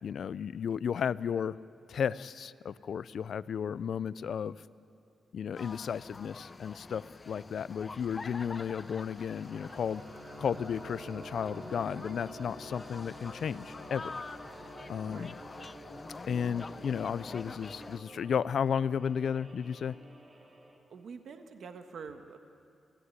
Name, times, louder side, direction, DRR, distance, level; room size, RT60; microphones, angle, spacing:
voice 1, 0.0-1.6 1.9-4.6 5.3-10.0 10.4-14.0 14.9-15.3 16.3-20.0, left 7 dB, 65° left, 18 dB, 0.5 m, -33 dB
sound 1, 5.6-18.0, left 3 dB, 25° left, 0.6 m, -47 dB
sound 2, 8.8-20.8, right 1 dB, 40° right, 4.1 m, -49 dB
voice 2, 15.0-15.3 20.9-22.4, right 5 dB, 65° right, 6 dB, 1.5 m, -46 dB
26.5 x 16.5 x 9.7 m, 2.4 s
wide cardioid pair, 135°, 0 cm